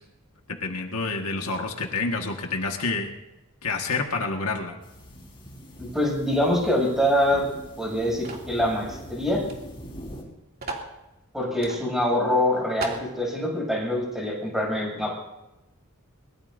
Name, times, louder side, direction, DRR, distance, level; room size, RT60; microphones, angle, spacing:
voice 1, 0.6-3.1 3.6-4.8, left 3 dB, 75° left, 2 dB, 1.8 m, -28 dB
sound 1, 4.8-10.2, equal, 25° left, 4.7 m, -42 dB
voice 2, 5.8-9.4 11.3-15.2, left 1 dB, ahead, -3 dB, 7.5 m, -25 dB
sound 2, 8.2-8.5 9.4-9.6 9.8-9.9 10.6-10.9 11.6-11.8 12.3-12.4 12.8-13.1, right 3 dB, 45° right, 2.8 m, -34 dB
23.0 x 21.0 x 2.7 m, 0.95 s
head